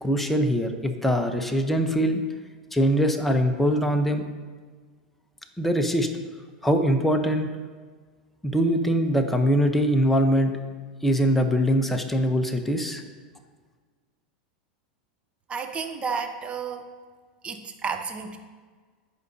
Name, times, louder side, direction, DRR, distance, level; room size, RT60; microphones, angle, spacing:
voice 1, 0.0-2.2 2.7-4.3 5.6-6.1 6.6-7.5 8.4-10.6 11.0-13.0, equal, 5° left, 4 dB, 0.8 m, -22 dB
voice 2, 15.5-16.9 17.4-18.4, right 5 dB, 25° right, 6 dB, 0.8 m, -31 dB
14.5 x 5.0 x 2.8 m, 1.5 s
hypercardioid pair, 110°, 5 cm